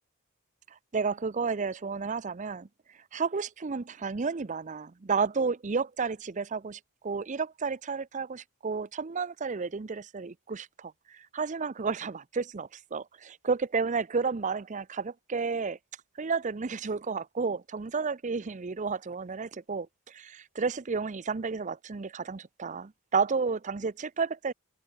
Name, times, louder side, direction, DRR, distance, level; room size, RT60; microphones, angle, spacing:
voice 1, 0.9-2.7 3.1-15.8 16.2-24.5, right 5 dB, 35° right, 0.5 m, -32 dB
open air
head